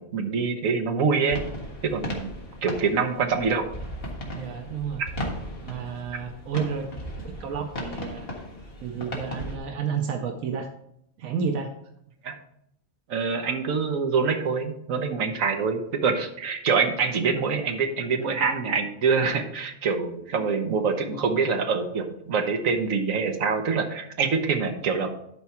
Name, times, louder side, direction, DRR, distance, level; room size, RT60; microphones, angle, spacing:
voice 1, 0.0-1.4 1.8-2.3 2.6-3.6 12.2-12.3 13.1-25.1, right 5 dB, 70° right, 5 dB, 1.4 m, -25 dB
sound 1, 1.3-9.6, equal, 45° left, 1.8 m, -36 dB
voice 2, 4.3-5.0 5.6-6.9 7.2-8.3 8.8-10.7 11.2-11.7, right 6 dB, 90° right, 5 dB, 1.2 m, -31 dB
11.5 x 4.7 x 4.3 m, 0.73 s
omnidirectional pair, 1.4 m